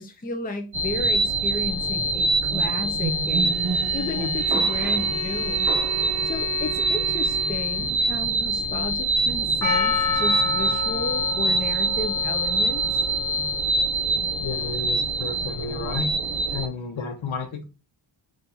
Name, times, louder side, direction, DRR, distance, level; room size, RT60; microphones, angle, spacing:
voice 1, 0.0-3.6 3.9-5.7 6.2-13.0, left 3 dB, 20° left, 0.6 m, -33 dB
sound 1, 0.7-16.7, right 2 dB, 50° right, 1.0 m, -24 dB
Bowed string instrument, 3.3-8.0, right 10 dB, 35° right, 0.5 m, -38 dB
Percussion, 9.6-14.0 14.6-14.7, left 6 dB, 40° left, 1.1 m, -29 dB
voice 2, 14.4-16.1 16.5-17.6, left 5 dB, 75° left, 0.9 m, -31 dB
4.3 x 2.6 x 3.9 m
cardioid pair, 80°, 47 cm